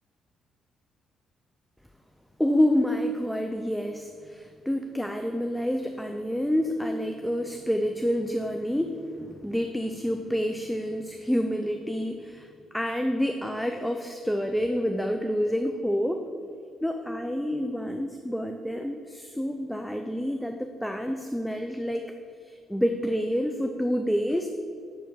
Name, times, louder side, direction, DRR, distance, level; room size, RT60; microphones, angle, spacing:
voice 1, 2.4-12.5 12.7-16.3 16.8-22.1 22.5-24.5, equal, ahead, 5 dB, 0.5 m, -28 dB
10.0 x 3.4 x 6.1 m, 2.3 s
cardioid pair, 90°, 0 cm